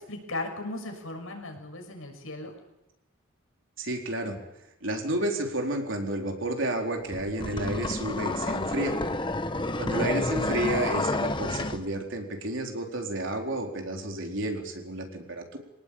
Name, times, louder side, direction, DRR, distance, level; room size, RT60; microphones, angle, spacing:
voice 1, 0.0-2.5, left 2 dB, 80° left, 4 dB, 6.4 m, -37 dB
voice 2, 3.8-4.4 4.8-9.0 9.8-15.6, right 1 dB, 65° right, 2 dB, 4.4 m, -31 dB
sound 1, 7.1-11.8, left 2 dB, 25° left, 1.2 m, -29 dB
25.5 x 18.5 x 8.9 m, 0.94 s
head